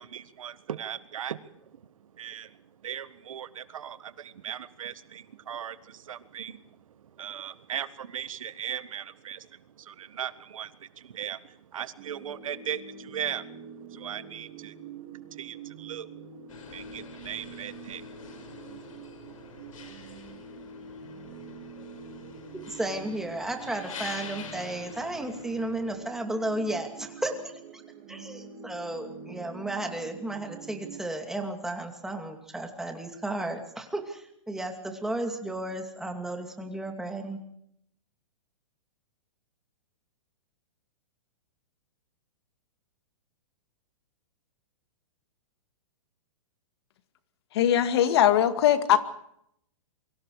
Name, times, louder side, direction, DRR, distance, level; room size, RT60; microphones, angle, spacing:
voice 1, 0.0-1.5 2.2-2.6 2.8-6.6 7.2-13.5 13.9-14.8 15.3-16.1 16.7-18.0, right 9 dB, 80° right, 13 dB, 1.6 m, -38 dB
sound 1, 12.0-31.0, right 5 dB, 40° right, 3.4 m, -46 dB
sound 2, 16.5-26.0, left 6 dB, 80° left, 6.1 m, -46 dB
voice 2, 22.6-27.8 28.1-37.4, right 1 dB, 5° right, 4 dB, 2.5 m, -34 dB
voice 3, 47.5-49.0, left 11 dB, 50° left, 9 dB, 2.2 m, -21 dB
28.5 x 24.0 x 4.9 m, 0.72 s
hypercardioid pair, 165°, 17 cm